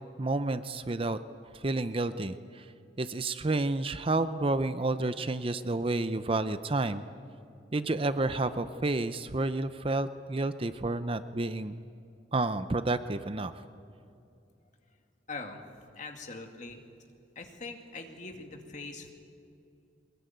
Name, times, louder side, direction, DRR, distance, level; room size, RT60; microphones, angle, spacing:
voice 1, 0.2-1.2 1.5-2.7 3.0-7.0 7.7-11.9 12.3-13.5, right 2 dB, 30° right, 12 dB, 0.6 m, -30 dB
voice 2, 15.3-15.6 16.0-16.8 17.4-19.1, left 3 dB, 40° left, 4 dB, 2.3 m, -42 dB
22.0 x 21.0 x 9.4 m, 2.6 s
head